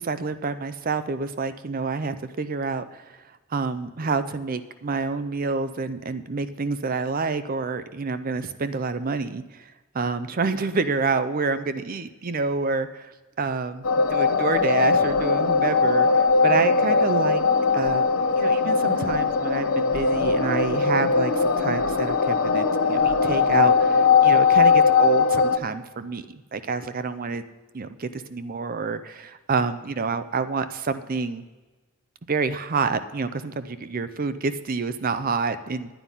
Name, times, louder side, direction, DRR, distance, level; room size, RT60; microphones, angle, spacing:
voice 1, 0.0-13.8 14.1-17.4 17.7-27.4 27.7-31.4 32.3-35.9, right 4 dB, 40° right, 12 dB, 0.5 m, -28 dB
sound 1, 13.8-25.6, left 5 dB, 70° left, 0.9 m, -20 dB
11.5 x 9.2 x 5.5 m, 1.2 s
head